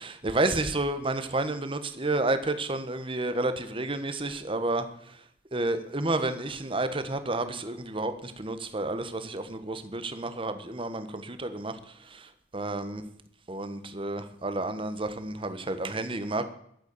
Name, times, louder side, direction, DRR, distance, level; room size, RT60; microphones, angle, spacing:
voice 1, 0.0-4.8 5.5-11.8 12.1-12.3 12.5-13.0 13.5-16.5, right 2 dB, 30° right, 10 dB, 1.3 m, -30 dB
13.0 x 8.2 x 8.3 m, 0.71 s
head